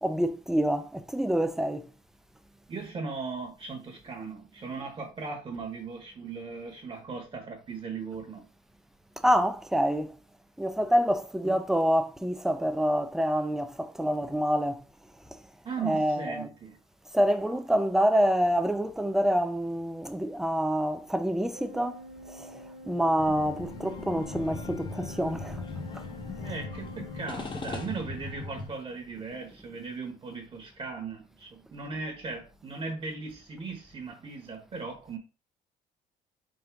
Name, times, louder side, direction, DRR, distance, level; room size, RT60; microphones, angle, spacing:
voice 1, 0.0-1.9 9.2-10.1 10.6-14.8 15.8-16.5 17.1-22.0 22.4-22.5 22.9-25.6, equal, ahead, 0.4 m, -26 dB
voice 2, 2.7-8.5 11.4-11.6 15.6-16.8 26.4-35.2, right 4 dB, 35° right, 1.0 m, -38 dB
Organ, 21.5-28.1, left 1 dB, 80° right, 1.1 m, -47 dB
sound 1, 23.2-28.7, left 3 dB, 30° left, 0.7 m, -39 dB
3.7 x 2.5 x 4.5 m
cardioid pair, 110°, 17 cm